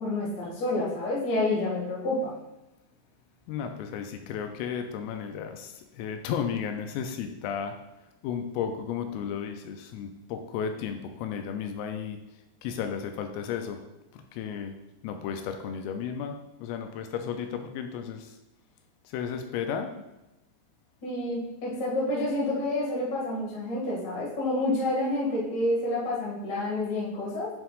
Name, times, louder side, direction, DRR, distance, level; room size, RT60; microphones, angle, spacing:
voice 1, 0.0-2.3 21.0-27.5, left 2 dB, 45° left, -6 dB, 1.4 m, -28 dB
voice 2, 3.5-7.8 8.2-12.2 12.6-13.8 14.1-14.7 15.0-18.3 19.1-20.0, left 7 dB, 85° left, 6 dB, 3.2 m, -34 dB
9.8 x 5.7 x 2.5 m, 0.95 s
omnidirectional pair, 5.9 m